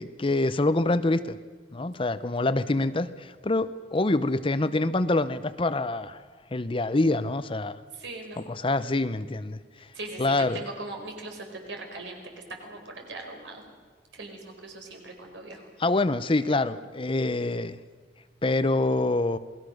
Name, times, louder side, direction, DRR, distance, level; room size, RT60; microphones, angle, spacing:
voice 1, 0.0-1.4 1.7-6.2 6.5-7.8 8.5-9.6 10.2-10.6 15.8-17.8 18.4-19.4, left 2 dB, 30° left, 13 dB, 0.7 m, -25 dB
voice 2, 7.9-8.5 9.9-12.2 12.6-13.6 14.1-15.7, right 2 dB, 70° right, 3 dB, 4.9 m, -40 dB
28.0 x 20.0 x 6.5 m, 1.5 s
head